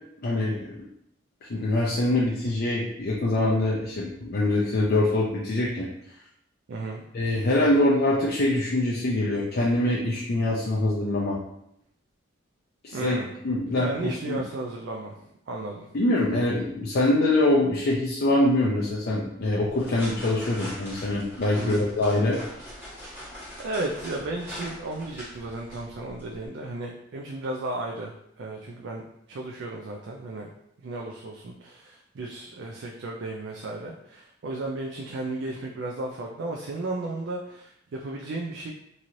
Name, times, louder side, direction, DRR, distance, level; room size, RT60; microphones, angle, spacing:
voice 1, 0.2-0.8 1.4-5.9 7.1-11.4 12.8-13.2 13.4-14.4 15.9-22.4, left 1 dB, 50° left, -5 dB, 0.4 m, -24 dB
voice 2, 6.7-7.0 12.9-13.3 13.7-15.9 21.6-21.8 22.9-23.2 23.6-29.0 29.3-30.5 30.8-38.7, right 2 dB, 60° right, -1 dB, 0.3 m, -34 dB
sound 1, 19.6-26.5, equal, 10° right, 1.3 m, -42 dB
3.0 x 2.7 x 2.5 m, 0.78 s
head